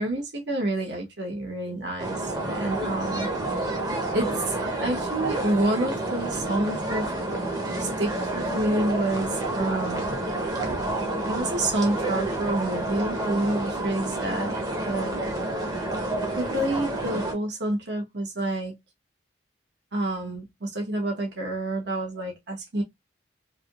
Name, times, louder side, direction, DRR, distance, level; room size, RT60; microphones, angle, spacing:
voice 1, 0.0-3.3 4.1-4.5 4.8-7.1 7.8-10.1 11.3-15.2 16.4-18.7 19.9-22.8, right 1 dB, 65° right, 1.1 m, -28 dB
sound 1, 2.0-17.3, right 2 dB, 20° right, 0.8 m, -29 dB
3.4 x 2.7 x 2.3 m
head